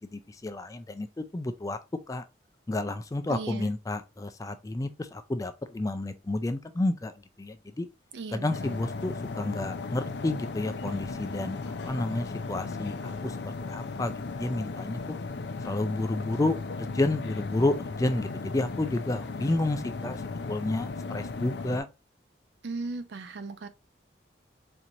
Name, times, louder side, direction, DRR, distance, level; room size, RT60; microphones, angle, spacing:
voice 1, 0.0-1.8 2.1-2.2 2.7-7.9 8.3-15.2 15.6-21.9, left 2 dB, 20° left, 0.3 m, -31 dB
voice 2, 3.3-3.7 8.1-8.8 22.6-23.7, right 3 dB, 80° right, 0.5 m, -37 dB
sound 1, 8.5-21.8, left 3 dB, 80° left, 0.5 m, -36 dB
4.4 x 2.8 x 2.5 m
head